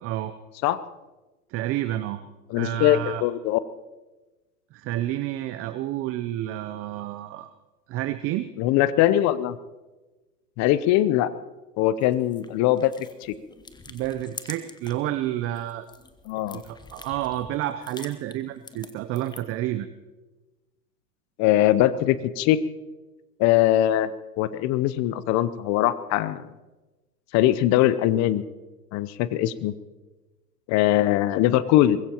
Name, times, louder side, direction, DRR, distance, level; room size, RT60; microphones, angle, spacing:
voice 1, 0.0-0.3 1.5-2.2 2.5-3.3 4.7-7.5 7.9-8.5 13.9-15.9 16.5-19.9, right 14 dB, 30° right, 11 dB, 0.7 m, -30 dB
voice 2, 2.5-3.6 8.6-9.6 10.6-11.3 11.8-12.9 13.2-13.3 16.3-16.6 21.4-22.6 23.4-24.1 24.4-26.5 27.3-28.4 28.9-29.7 30.7-32.0, left 13 dB, 35° left, 16 dB, 0.8 m, -21 dB
sound 1, 12.0-15.1 15.4-19.6, left 4 dB, 10° left, 1.0 m, -45 dB
23.5 x 20.5 x 3.0 m, 1.2 s
hypercardioid pair, 105°, 48 cm